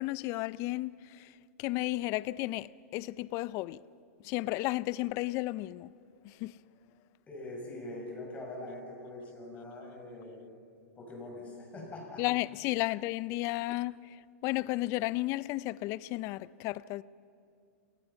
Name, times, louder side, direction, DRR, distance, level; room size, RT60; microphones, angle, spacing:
voice 1, 0.0-3.8 4.2-5.9 6.2-6.6 12.2-17.0, left 19 dB, 35° left, 0.5 m, -33 dB
voice 2, 7.3-10.4 11.0-12.2, left 2 dB, 15° left, 7.2 m, -43 dB
28.0 x 19.0 x 5.8 m
hypercardioid pair, 130°, 8 cm